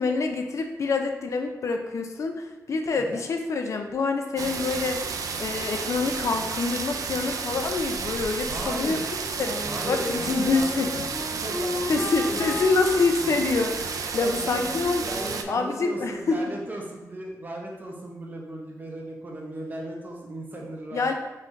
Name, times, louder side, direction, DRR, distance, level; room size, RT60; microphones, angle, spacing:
voice 1, 0.0-9.0 9.4-10.9 11.9-15.0 15.5-16.4 20.9-21.1, left 4 dB, 55° left, 4 dB, 0.5 m, -26 dB
sound 1, 4.4-15.4, right 5 dB, 70° right, 0.3 m, -32 dB
voice 2, 8.5-9.1 9.6-11.0 11.3-12.6 13.2-13.5 14.1-14.7 15.0-21.1, right 1 dB, 30° right, -1 dB, 0.6 m, -37 dB
Wind instrument woodwind instrument, 9.4-16.0, left 2 dB, 35° left, 0.8 m, -35 dB
5.5 x 3.2 x 2.6 m, 1.1 s
wide cardioid pair, 175°, 6 cm